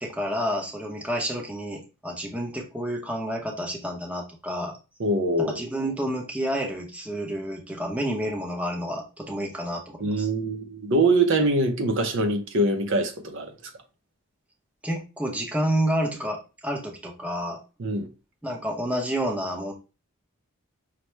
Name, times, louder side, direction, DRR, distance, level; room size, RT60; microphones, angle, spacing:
voice 1, 0.0-4.8 5.4-10.3 14.8-17.6 18.4-19.7, equal, 5° right, 0.7 m, -29 dB
voice 2, 5.0-5.6 10.0-13.7 17.8-18.1, right 2 dB, 55° right, 0.7 m, -24 dB
5.7 x 2.1 x 3.1 m
head